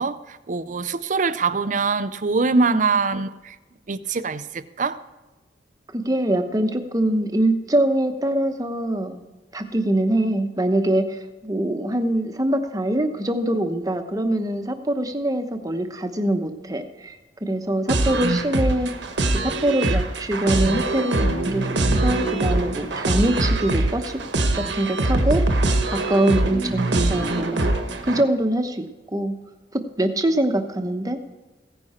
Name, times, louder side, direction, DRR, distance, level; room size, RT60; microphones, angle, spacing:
voice 1, 0.0-3.6 3.9-5.0, right 4 dB, 45° right, 14 dB, 0.6 m, -23 dB
voice 2, 2.6-3.0 5.9-9.2 9.5-18.9 19.3-21.7 22.0-24.2 24.5-25.5 25.9-27.7 28.0-29.4 29.7-31.2, right 1 dB, 20° right, 7 dB, 0.9 m, -23 dB
sound 1, 17.9-28.2, right 2 dB, 85° right, 1.2 m, -23 dB
16.0 x 9.8 x 4.3 m, 1.1 s
head